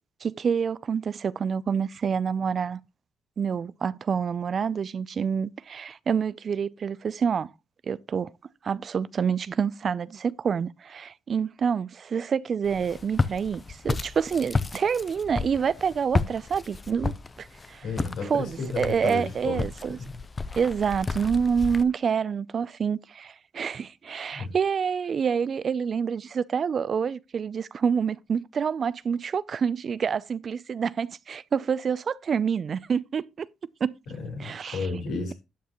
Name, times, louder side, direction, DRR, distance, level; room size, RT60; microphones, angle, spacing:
voice 1, 0.2-2.8 3.4-7.5 7.8-8.3 8.6-17.8 18.3-20.0 20.5-33.5 33.8-33.9 34.4-34.9, right 6 dB, 50° right, 0.4 m, -27 dB
Walk footsteps, 12.6-21.8, left 3 dB, 30° left, 0.7 m, -32 dB
voice 2, 17.8-19.6 20.0-20.2 24.1-24.5 34.1-35.3, left 4 dB, 75° left, 4.0 m, -33 dB
12.0 x 8.1 x 3.0 m
cardioid pair, 90°, 0 cm